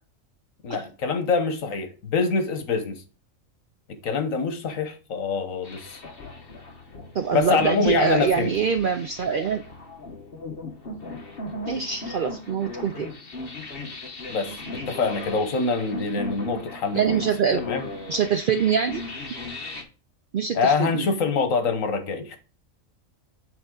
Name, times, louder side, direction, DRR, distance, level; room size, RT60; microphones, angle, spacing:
voice 1, 0.6-3.0 4.0-6.0 7.3-8.5 14.3-17.2 17.5-17.8 20.5-22.4, left 4 dB, 80° left, 1.4 m, -25 dB
sound 1, 5.6-19.8, left 3 dB, 45° left, 1.2 m, -37 dB
voice 2, 7.1-9.6 11.7-13.1 16.9-17.6 18.1-19.0 20.3-21.1, right 7 dB, 70° right, 0.5 m, -24 dB
8.0 x 3.7 x 3.8 m
omnidirectional pair, 1.4 m